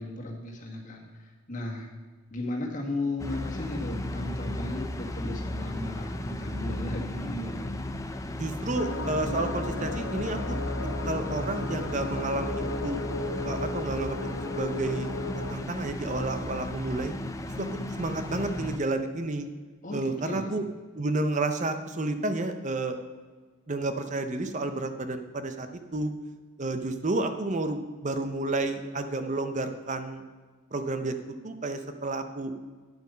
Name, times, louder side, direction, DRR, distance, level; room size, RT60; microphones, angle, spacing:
voice 1, 0.0-1.9 2.3-7.8 19.8-20.5, left 2 dB, 35° left, 0 dB, 1.8 m, -35 dB
sound 1, 3.2-18.8, left 1 dB, 15° left, 0.5 m, -35 dB
voice 2, 8.4-10.6 11.1-13.0 13.4-14.2 14.5-15.1 15.5-17.1 17.6-19.5 19.9-20.6 20.9-23.0 23.7-25.7 25.9-26.1 26.6-30.2 30.7-31.1 31.4-32.5, right 2 dB, 35° right, 8 dB, 0.7 m, -31 dB
sound 2, 8.7-15.5, left 2 dB, 65° left, 1.0 m, -35 dB
9.7 x 7.8 x 5.5 m, 1.4 s
head